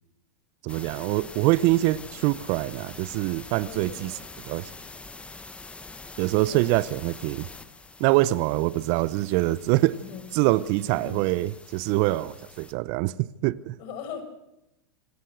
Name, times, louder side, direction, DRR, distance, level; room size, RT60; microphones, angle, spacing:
voice 1, 0.6-4.1 4.5-4.7 6.2-7.5 8.0-10.0 10.3-13.8, right 18 dB, 50° right, 0.7 m, -24 dB
sound 1, 0.7-12.7, left 3 dB, 10° left, 1.2 m, -45 dB
voice 2, 3.6-4.2 6.4-6.8 9.9-10.2 10.9-11.2 13.8-14.2, left 6 dB, 50° left, 5.8 m, -40 dB
26.0 x 18.5 x 6.4 m
hypercardioid pair, 105°, 12 cm